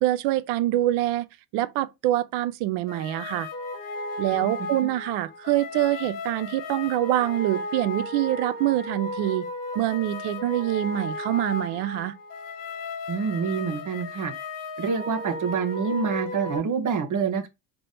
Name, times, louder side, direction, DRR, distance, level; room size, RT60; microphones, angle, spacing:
voice 1, 0.0-1.3 1.5-3.5 4.2-9.5 9.7-12.1, right 15 dB, 80° right, 0.6 m, -25 dB
sound 1, 2.9-16.6, left 2 dB, 55° left, 1.1 m, -35 dB
voice 2, 4.3-4.7 13.1-14.3 14.8-17.5, right 6 dB, 50° right, 1.1 m, -27 dB
3.5 x 3.0 x 3.9 m
cardioid pair, 105°, 40 cm